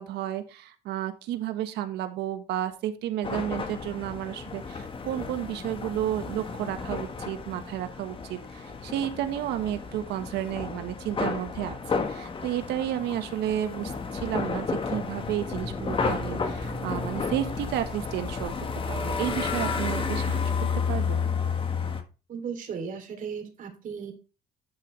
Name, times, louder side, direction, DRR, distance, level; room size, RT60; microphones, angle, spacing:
voice 1, 0.0-18.5 18.9-20.5 20.9-21.3, right 12 dB, 85° right, 9 dB, 1.6 m, -32 dB
sound 1, 3.2-22.0, left 5 dB, 30° left, 1.6 m, -32 dB
voice 2, 22.3-24.1, right 6 dB, 50° right, 5 dB, 3.4 m, -36 dB
12.0 x 6.0 x 3.4 m, 0.32 s
cardioid pair, 110°, 17 cm